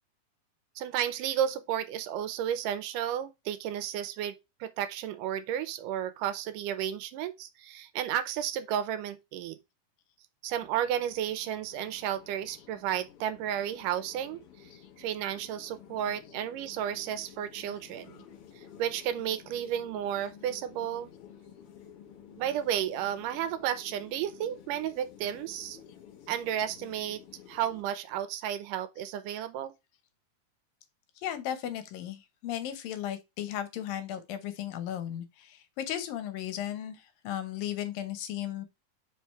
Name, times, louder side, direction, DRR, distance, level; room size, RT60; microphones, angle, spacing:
voice 1, 0.8-9.6 10.4-14.4 15.0-18.2 18.6-21.1 22.4-25.8 26.3-27.2 27.5-29.7, right 10 dB, 80° right, 2.1 m, -32 dB
sound 1, 10.5-27.8, left 9 dB, 65° left, 1.5 m, -53 dB
voice 2, 31.2-38.7, left 11 dB, 85° left, 2.7 m, -36 dB
5.1 x 4.6 x 4.5 m
omnidirectional pair, 4.0 m